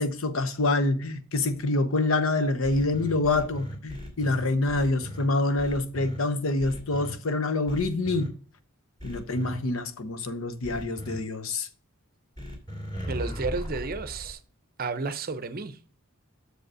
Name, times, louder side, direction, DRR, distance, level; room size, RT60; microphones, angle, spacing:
voice 1, 0.0-8.3 9.0-11.7, left 2 dB, 70° left, 0.9 m, -26 dB
sound 1, 2.6-5.2 5.6-6.2 6.6-7.1 7.7-8.3 9.0-9.6 10.6-11.2 12.4-14.3, equal, 20° left, 2.4 m, -37 dB
voice 2, 13.1-14.4 14.8-16.0, right 4 dB, 45° right, 0.6 m, -32 dB
6.4 x 5.3 x 6.1 m
head